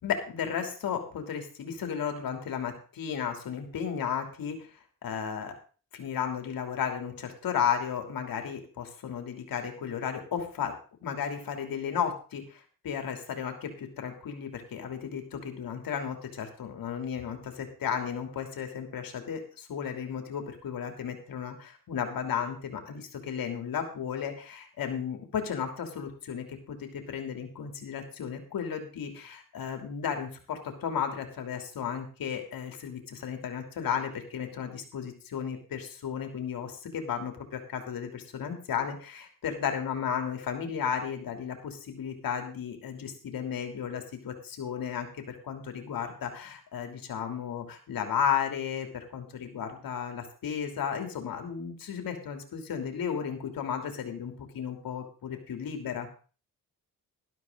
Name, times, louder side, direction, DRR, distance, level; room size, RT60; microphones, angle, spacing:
voice 1, 0.0-4.7 5.0-5.5 5.9-10.7 11.0-56.1, left 7 dB, 80° left, 4 dB, 3.2 m, -34 dB
12.5 x 12.5 x 3.9 m, 0.38 s
cardioid pair, 75°, 34 cm